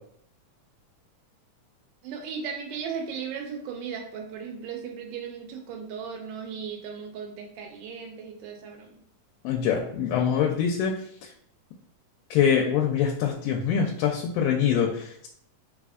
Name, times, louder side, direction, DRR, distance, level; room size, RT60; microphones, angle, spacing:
voice 1, 2.0-8.9, right 6 dB, 80° right, 3 dB, 2.1 m, -36 dB
voice 2, 9.4-10.9 12.3-15.3, left 8 dB, 90° left, 1 dB, 2.2 m, -24 dB
4.2 x 4.1 x 2.4 m, 0.67 s
omnidirectional pair, 3.8 m